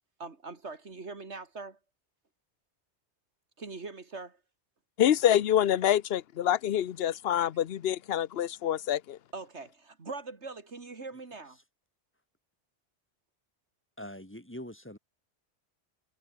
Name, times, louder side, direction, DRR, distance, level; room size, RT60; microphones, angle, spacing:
voice 1, 0.2-1.8 3.6-4.4 9.3-11.6, right 3 dB, 75° right, 2.7 m, -42 dB
voice 2, 5.0-9.2, left 11 dB, 65° left, 0.9 m, -26 dB
voice 3, 14.0-15.0, left 1 dB, 10° left, 3.3 m, -43 dB
omnidirectional pair, 1.2 m